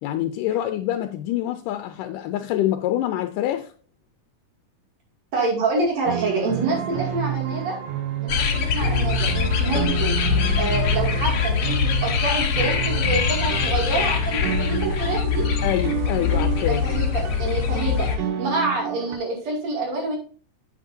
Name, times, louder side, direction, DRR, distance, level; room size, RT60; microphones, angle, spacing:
voice 1, 0.0-3.7 15.6-16.8, left 13 dB, 85° left, 2.1 m, -26 dB
voice 2, 5.3-7.8 8.2-10.1 10.6-15.5 16.6-18.1 18.4-20.2, right 2 dB, 55° right, 3.7 m, -27 dB
sound 1, 6.1-19.2, right 10 dB, 75° right, 2.5 m, -30 dB
sound 2, 8.3-18.2, left 7 dB, 65° left, 1.5 m, -23 dB
8.5 x 8.2 x 2.7 m
omnidirectional pair, 3.8 m